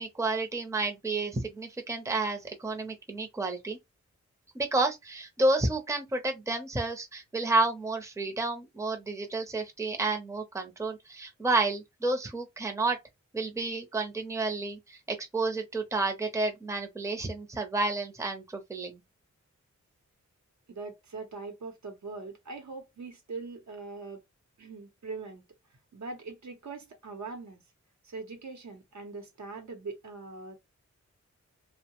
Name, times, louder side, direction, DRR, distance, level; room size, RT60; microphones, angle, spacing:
voice 1, 0.0-3.8 4.5-13.0 13.3-19.0, right 2 dB, 10° right, 0.6 m, -30 dB
voice 2, 20.7-24.2 24.6-25.4 25.9-27.6 28.0-30.5, right 4 dB, 70° right, 0.8 m, -41 dB
2.7 x 2.0 x 2.9 m
wide cardioid pair, 110°, 29 cm